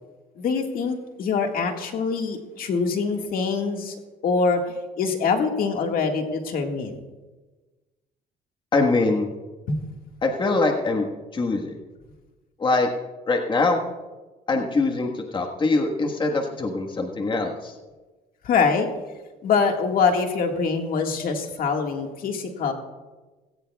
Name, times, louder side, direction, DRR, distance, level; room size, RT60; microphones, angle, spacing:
voice 1, 0.4-3.9 4.2-7.0 9.7-9.8 18.4-18.9 19.4-22.7, left 5 dB, 60° left, 3 dB, 1.8 m, -24 dB
voice 2, 8.7-9.3 10.2-11.1 11.3-11.7 12.6-12.9 13.3-13.8 14.5-17.7, left 3 dB, 30° left, 2 dB, 1.4 m, -23 dB
19.0 x 17.5 x 2.3 m, 1.2 s
cardioid pair, 110°, 17 cm